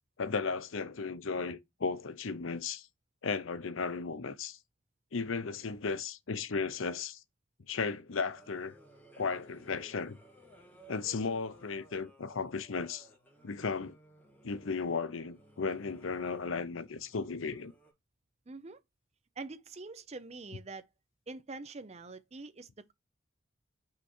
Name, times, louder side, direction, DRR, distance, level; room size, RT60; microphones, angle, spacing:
voice 1, 0.2-2.9 3.2-4.6 5.1-7.2 7.7-8.7 9.2-10.2 10.9-13.1 13.4-14.0 14.4-17.7, left 4 dB, 85° left, 0.7 m, -35 dB
sound 1, 8.3-17.9, right 1 dB, 10° left, 2.7 m, -59 dB
voice 2, 18.5-18.8 19.4-20.9 21.3-22.9, right 3 dB, 35° right, 0.6 m, -45 dB
5.7 x 4.7 x 4.3 m
head